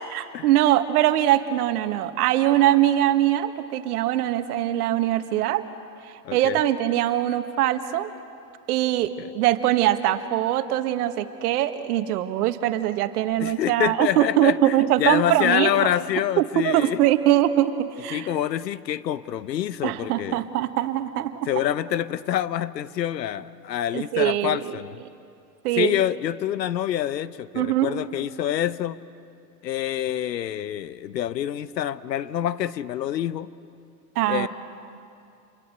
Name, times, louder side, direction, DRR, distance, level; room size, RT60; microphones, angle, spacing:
voice 1, 0.0-5.6 6.3-8.1 8.7-15.7 16.4-18.3 19.8-21.5 23.9-24.6 25.6-26.0 27.5-28.0 34.1-34.5, right 13 dB, 65° right, 9 dB, 1.7 m, -22 dB
voice 2, 6.2-6.6 9.2-9.3 13.4-17.0 18.1-20.4 21.5-25.0 25.8-29.0 29.6-33.5 34.3-34.5, left 11 dB, 90° left, 16 dB, 1.0 m, -26 dB
29.0 x 23.0 x 8.0 m, 2.5 s
hypercardioid pair, 110°, 48 cm